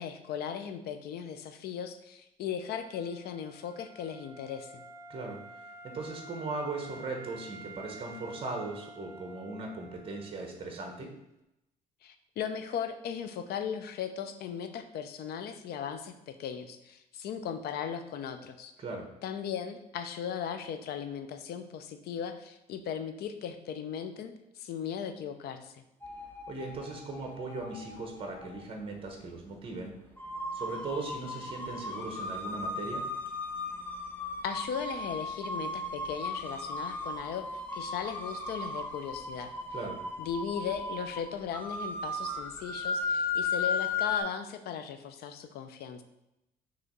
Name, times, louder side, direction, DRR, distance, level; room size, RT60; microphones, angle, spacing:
voice 1, 0.0-4.8 12.0-18.7 19.2-25.8 34.4-37.5 37.7-39.5 40.2-46.0, left 8 dB, 70° left, 9 dB, 0.7 m, -37 dB
Wind instrument woodwind instrument, 2.8-10.6, right 2 dB, 15° right, 0.7 m, -50 dB
voice 2, 5.8-11.1 18.8-19.1 26.5-29.9 30.5-33.0 39.7-40.0, right 3 dB, 30° right, 2 dB, 1.3 m, -38 dB
sound 1, 26.0-28.6 29.5-29.6 30.2-44.2, left 3 dB, 10° left, 0.9 m, -36 dB
6.1 x 3.2 x 5.4 m, 0.88 s
cardioid pair, 110°, 17 cm